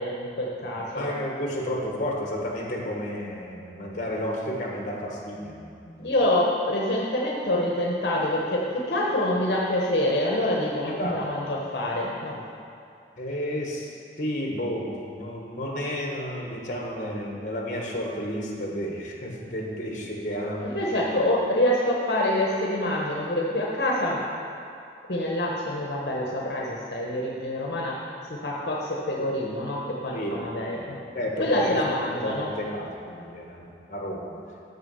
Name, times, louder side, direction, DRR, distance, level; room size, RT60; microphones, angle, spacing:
voice 1, 0.0-1.1 6.0-12.5 20.6-24.2 25.1-28.0 28.3-31.0 31.4-32.5, left 1 dB, 70° left, -3 dB, 1.0 m, -26 dB
voice 2, 0.6-6.1 10.8-11.1 13.2-21.2 30.1-30.4 30.7-31.8 32.1-34.4, equal, 45° left, -1 dB, 1.3 m, -32 dB
6.6 x 5.9 x 6.9 m, 2.4 s
head